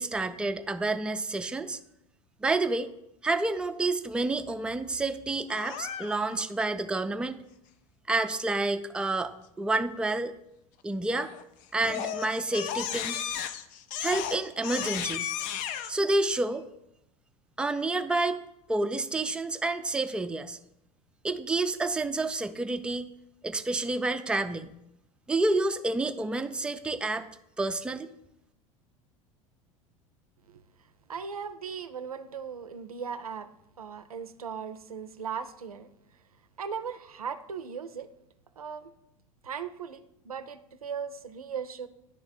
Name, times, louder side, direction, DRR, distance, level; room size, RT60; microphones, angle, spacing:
voice 1, 0.0-1.8 2.4-2.9 3.2-7.4 8.1-9.3 9.6-10.3 10.8-11.3 11.7-13.2 14.0-15.3 15.9-16.6 17.6-18.4 18.7-20.6 21.2-23.1 23.4-24.7 25.3-27.3 27.6-28.1, right 2 dB, 5° right, 8 dB, 0.4 m, -29 dB
Crying sobbing, 5.5-6.4 11.1-11.4 11.8-15.9, left 9 dB, 45° left, 0.5 m, -34 dB
voice 2, 31.1-33.5 33.8-35.9 36.6-38.1 38.6-38.9 39.4-41.9, right 6 dB, 85° right, 11 dB, 0.4 m, -38 dB
9.8 x 3.5 x 4.0 m, 0.82 s
figure-of-eight pair, 75°, 18 cm